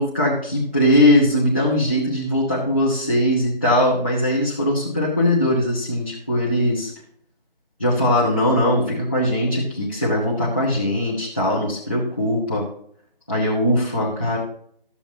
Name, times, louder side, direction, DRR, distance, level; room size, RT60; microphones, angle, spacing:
voice 1, 0.0-6.9 7.8-12.7 13.3-14.4, left 1 dB, 10° left, -10 dB, 0.8 m, -20 dB
14.0 x 7.0 x 2.8 m, 0.63 s
figure-of-eight pair, 165°, 29 cm